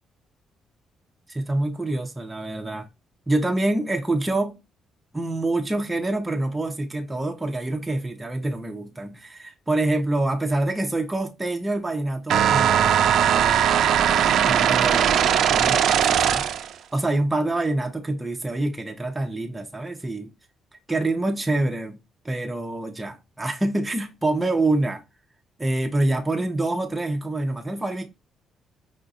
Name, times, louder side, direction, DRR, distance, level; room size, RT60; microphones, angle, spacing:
voice 1, 1.3-2.9 3.3-4.6 5.1-13.7 14.4-16.5 16.9-20.3 20.9-22.0 22.2-25.0 25.6-28.1, right 2 dB, 15° right, 0.6 m, -26 dB
sound 1, 12.3-16.7, right 9 dB, 75° right, 0.4 m, -19 dB
4.9 x 2.5 x 2.3 m
cardioid pair, 90°, 0 cm